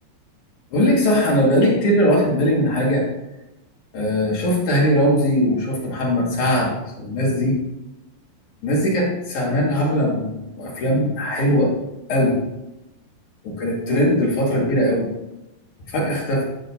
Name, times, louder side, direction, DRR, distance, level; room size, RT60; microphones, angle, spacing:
voice 1, 0.7-3.0 3.9-6.7 7.0-7.6 8.6-11.7 12.1-12.4 13.4-15.1 15.9-16.5, equal, 55° left, -4 dB, 2.5 m, -20 dB
12.0 x 6.4 x 2.7 m, 0.95 s
omnidirectional pair, 5.3 m